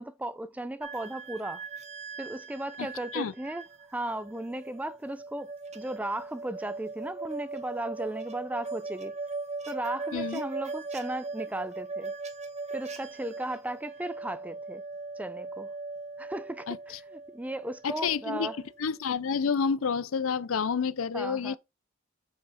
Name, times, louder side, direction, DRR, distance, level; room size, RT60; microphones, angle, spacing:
voice 1, 0.0-1.6 2.2-3.6 3.9-9.2 9.7-12.1 12.7-14.8 15.2-15.7 16.2-18.6 21.1-21.6, right 1 dB, 5° right, 0.4 m, -36 dB
sound 1, 0.8-18.8, right 3 dB, 35° right, 1.3 m, -39 dB
voice 2, 10.1-10.4 16.7-17.0 17.8-18.5 18.8-21.6, left 6 dB, 75° left, 0.5 m, -29 dB
7.1 x 5.2 x 4.1 m
head